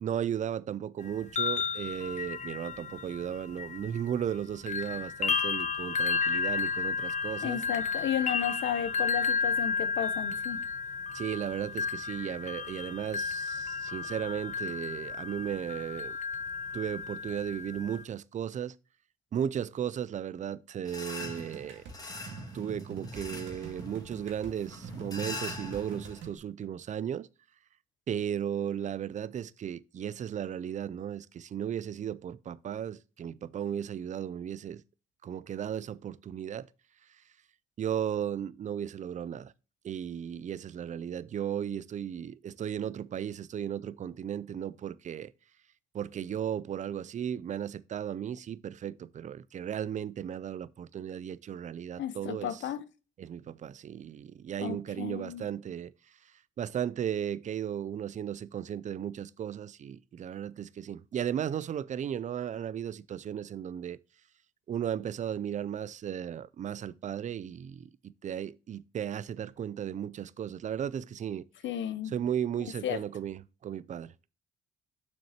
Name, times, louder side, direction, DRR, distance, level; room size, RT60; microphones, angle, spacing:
voice 1, 0.0-7.6 11.1-16.2 16.7-18.7 19.3-21.8 22.5-27.3 28.1-34.8 35.2-36.7 37.8-39.5 39.8-45.3 45.9-52.6 53.2-55.9 56.6-64.0 64.7-71.5 72.1-74.3, right 9 dB, 40° right, 0.4 m, -35 dB
sound 1, 1.1-4.4 4.7-18.0, left 5 dB, 40° left, 0.5 m, -33 dB
voice 2, 7.4-10.6 52.0-52.8 54.6-55.5 71.6-72.1 72.8-73.0, left 10 dB, 70° left, 0.8 m, -33 dB
sound 2, 20.8-26.2, left 2 dB, 20° left, 1.4 m, -43 dB
sound 3, 21.2-26.4, right 4 dB, 70° right, 2.0 m, -44 dB
7.2 x 6.2 x 2.9 m
cardioid pair, 90°, 20 cm